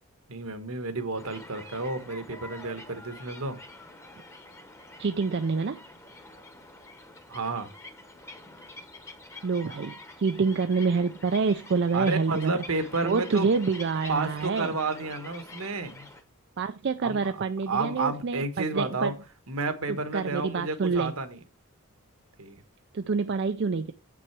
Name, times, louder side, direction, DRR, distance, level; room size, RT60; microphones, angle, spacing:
voice 1, 0.3-3.6 7.3-7.7 11.9-13.5 14.1-16.1 17.0-17.3 17.7-19.1 19.5-21.4 22.4-22.6, right 3 dB, 70° right, 1.3 m, -31 dB
sound 1, 1.2-16.2, left 2 dB, 15° left, 1.0 m, -46 dB
voice 2, 5.0-5.8 9.4-12.5 13.0-14.8 16.6-19.1 19.9-21.1 22.9-23.9, right 4 dB, 50° right, 0.4 m, -27 dB
7.8 x 6.1 x 4.6 m
head